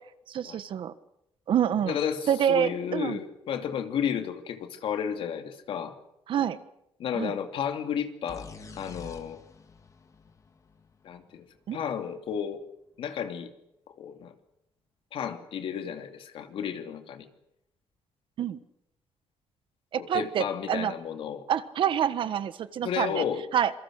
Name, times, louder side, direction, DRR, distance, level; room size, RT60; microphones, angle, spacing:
voice 1, 0.3-0.9 1.5-2.0 2.3-3.2 6.3-6.6 7.1-7.4 11.7-11.8 18.4-18.6 19.9-20.9 21.5-23.2 23.5-23.7, right 9 dB, 60° right, 13 dB, 1.4 m, -27 dB
voice 2, 1.8-5.9 7.0-8.5 8.8-9.4 11.0-11.5 11.7-12.6 13.0-13.5 14.0-14.3 15.1-17.3 20.0-21.4 22.8-23.4, left 8 dB, 70° left, 7 dB, 2.8 m, -32 dB
sound 1, 8.3-12.0, left 4 dB, 35° left, 2.5 m, -48 dB
27.0 x 23.5 x 6.5 m, 0.81 s
cardioid pair, 130°, 10 cm